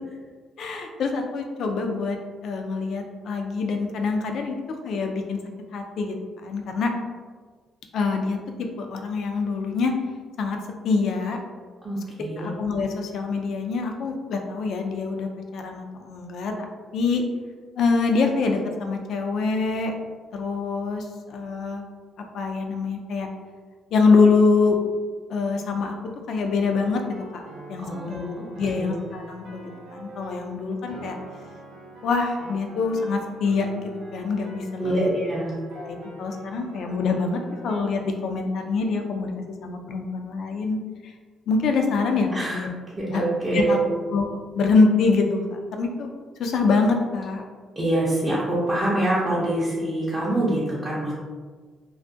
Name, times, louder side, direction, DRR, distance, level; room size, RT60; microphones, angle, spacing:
voice 1, 0.6-2.2 2.4-4.6 4.8-5.4 5.7-6.2 6.4-6.9 7.9-8.4 8.8-9.9 10.4-10.6 10.8-11.4 12.4-16.5 16.9-17.2 17.8-19.9 20.3-21.9 22.3-23.3 23.9-24.8 25.3-25.9 26.3-27.0 27.3-27.4 27.7-31.2 32.0-35.1 35.8-39.3 39.6-41.1 41.5-42.7 43.1-43.2 43.5-43.8 44.1-44.3 44.6-46.1 46.4-47.5, left 4 dB, 70° left, 3 dB, 0.3 m, -25 dB
voice 2, 11.8-12.5 27.8-28.9 34.8-35.6 42.3-42.6 43.0-43.9 47.8-51.1, right 1 dB, 25° right, -8 dB, 0.5 m, -25 dB
sound 1, 26.7-37.8, right 1 dB, 90° right, 0.5 m, -43 dB
2.3 x 2.1 x 2.6 m, 1.5 s
cardioid pair, 90°, 0 cm